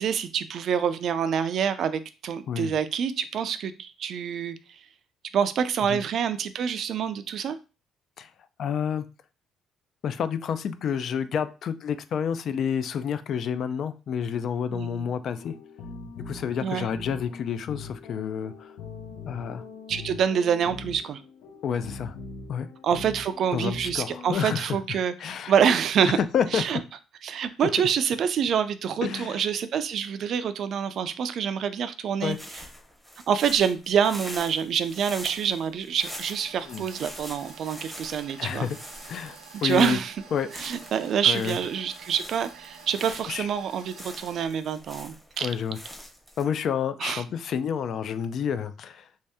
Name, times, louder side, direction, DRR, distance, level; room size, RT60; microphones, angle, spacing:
voice 1, 0.0-4.6 5.3-7.6 14.7-15.1 16.6-16.9 19.9-21.2 22.8-26.2 26.5-26.8 27.2-32.4 33.3-38.7 39.6-40.1 40.5-45.5 47.0-47.2, right 7 dB, 50° right, 12 dB, 0.3 m, -26 dB
voice 2, 8.6-9.0 10.0-15.5 16.3-18.7 19.2-19.6 21.6-22.1 22.5-22.7 23.5-24.8 25.2-25.5 26.1-26.6 29.0-29.4 32.2-32.4 36.6-36.8 38.4-38.8 39.1-40.0 40.3-40.5 41.2-41.6 43.3-43.5 45.4-45.8 46.4-49.1, left 7 dB, 50° left, 12 dB, 0.3 m, -29 dB
sound 1, 15.4-24.3, left 3 dB, 75° left, 0.8 m, -42 dB
sound 2, 32.2-46.4, equal, ahead, 0.8 m, -44 dB
sound 3, 36.0-44.5, right 6 dB, 90° right, 0.6 m, -49 dB
3.1 x 2.7 x 3.5 m, 0.31 s
cardioid pair, 140°, 0 cm